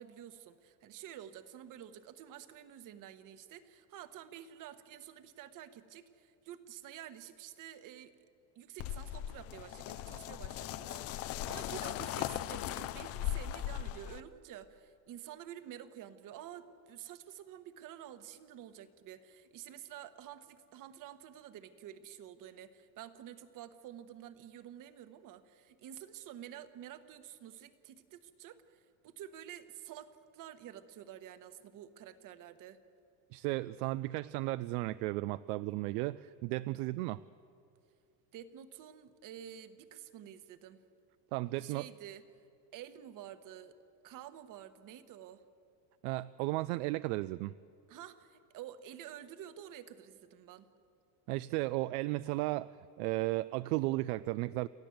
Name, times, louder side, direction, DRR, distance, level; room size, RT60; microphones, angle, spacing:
voice 1, 0.0-8.1 8.5-32.8 38.3-40.8 41.6-42.2 42.7-43.7 44.0-45.4 47.9-50.7, right 10 dB, 40° right, 11 dB, 1.2 m, -50 dB
sound 1, 8.8-14.2, left 12 dB, 30° left, 0.4 m, -38 dB
voice 2, 33.3-37.2 41.3-41.9 46.0-47.5 51.3-52.7 53.0-54.7, right 19 dB, 65° right, 15 dB, 0.5 m, -34 dB
29.0 x 13.5 x 7.9 m, 2.6 s
supercardioid pair, 140°, 50 cm